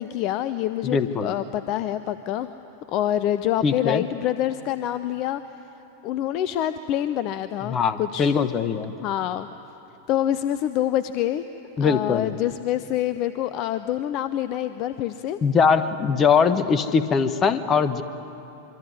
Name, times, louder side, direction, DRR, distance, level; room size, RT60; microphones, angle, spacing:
voice 1, 0.0-2.5 2.9-5.4 6.0-8.3 9.0-9.5 10.1-11.4 11.8-15.4, left 12 dB, 40° left, 13 dB, 0.6 m, -26 dB
voice 2, 0.8-1.3 3.6-4.0 7.7-8.9 11.8-12.3 15.4-18.0, left 6 dB, 25° left, 12 dB, 1.2 m, -21 dB
26.0 x 23.5 x 9.7 m, 3.0 s
figure-of-eight pair, 90°, 0 cm